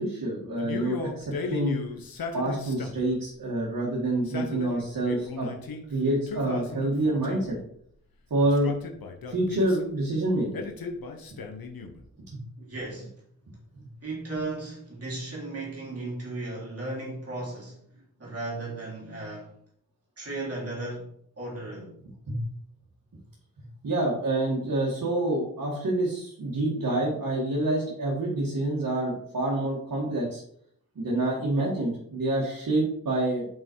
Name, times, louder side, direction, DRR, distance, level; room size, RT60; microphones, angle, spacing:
voice 1, 0.0-1.8 2.3-5.5 5.9-7.6 8.3-8.7 9.3-10.7 12.3-12.4 22.3-22.4 23.8-30.4 31.0-33.5, right 1 dB, 65° right, 2.2 m, -27 dB
Male speech man speaking, 0.6-3.1 4.1-5.8 6.3-7.6 8.4-9.9 10.5-12.0, left 4 dB, 85° left, 1.1 m, -36 dB
voice 2, 12.6-13.1 14.0-17.8 18.2-19.5 20.2-21.1 21.4-21.9, right 2 dB, 45° right, 3.0 m, -35 dB
5.6 x 5.6 x 4.7 m
wide cardioid pair, 145°, 35 cm